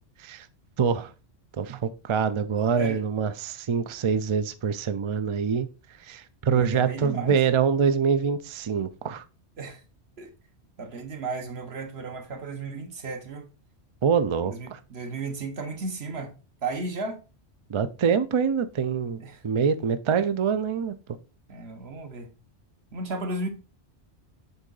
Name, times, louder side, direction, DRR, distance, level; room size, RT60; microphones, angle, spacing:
voice 1, 0.8-1.1 1.6-5.7 6.1-9.2 14.0-14.8 17.7-19.2 19.4-20.9, right 6 dB, 50° right, 0.3 m, -25 dB
voice 2, 6.4-7.4 9.6-9.8 10.2-10.3 10.8-13.5 14.5-16.3 16.6-17.2 19.2-19.4 21.5-22.3 22.9-23.5, right 3 dB, 65° right, 1.3 m, -34 dB
8.0 x 3.7 x 3.9 m
omnidirectional pair, 1.1 m